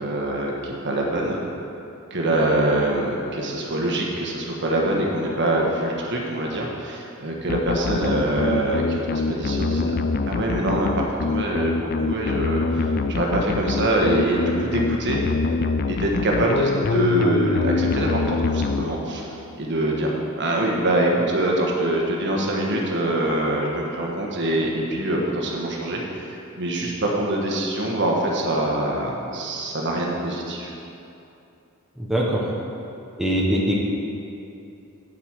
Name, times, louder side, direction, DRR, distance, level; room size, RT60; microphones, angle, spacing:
voice 1, 0.0-1.4 2.1-9.9 10.3-15.2 15.9-20.1 20.4-26.3 26.6-30.7, right 1 dB, 55° right, -1 dB, 1.3 m, -24 dB
sound 1, 7.5-19.4, left 4 dB, 45° left, 0.4 m, -25 dB
voice 2, 32.0-32.4 33.2-33.8, equal, ahead, -4 dB, 1.0 m, -22 dB
8.8 x 8.0 x 4.7 m, 2.7 s
head